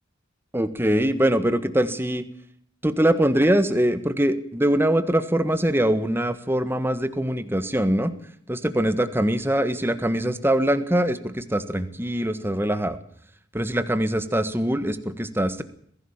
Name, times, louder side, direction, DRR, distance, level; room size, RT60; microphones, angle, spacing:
voice 1, 0.5-2.2 2.8-8.1 8.5-13.0 13.5-15.6, right 1 dB, 10° right, 11 dB, 1.5 m, -23 dB
22.0 x 16.0 x 7.4 m, 0.65 s
head